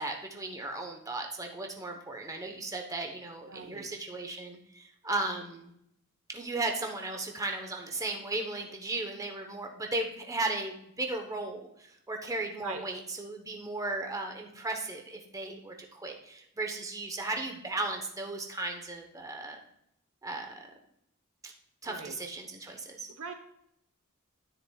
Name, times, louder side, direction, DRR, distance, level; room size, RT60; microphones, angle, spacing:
voice 1, 0.0-5.7 6.3-19.6 20.2-20.7 21.4-21.5 21.8-23.1, right 2 dB, 15° right, 2 dB, 0.9 m, -36 dB
voice 2, 3.5-3.9 12.6-12.8 21.9-22.2 23.2-23.3, right 4 dB, 65° right, 6 dB, 1.0 m, -41 dB
10.0 x 9.8 x 2.3 m, 0.75 s
head